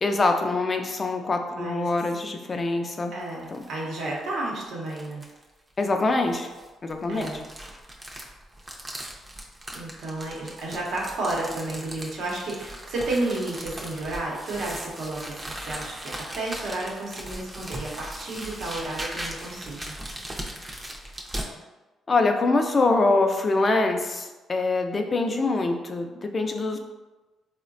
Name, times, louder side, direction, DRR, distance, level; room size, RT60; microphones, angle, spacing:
voice 1, 0.0-3.1 3.5-3.6 5.8-6.5 6.8-7.3 22.1-26.8, left 3 dB, 35° left, 4 dB, 0.3 m, -24 dB
voice 2, 1.5-1.9 3.1-5.2 7.1-7.4 9.7-19.9, right 2 dB, 75° right, -3 dB, 0.8 m, -32 dB
sound 1, 3.2-3.7 4.2-4.3 4.9-5.4 6.3-21.5, right 1 dB, 25° right, 0.5 m, -38 dB
3.8 x 2.1 x 2.5 m, 1.2 s
cardioid pair, 90°, 0 cm